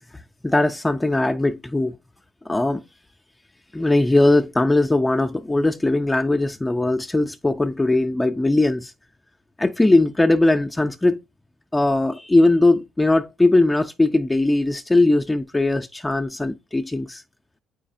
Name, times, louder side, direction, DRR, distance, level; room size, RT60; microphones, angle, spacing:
voice 1, 0.4-2.0 2.5-2.8 3.7-8.9 9.6-11.2 11.7-17.2, left 2 dB, 15° left, 0.5 m, -19 dB
8.4 x 4.9 x 2.6 m
supercardioid pair, 65°, 0 cm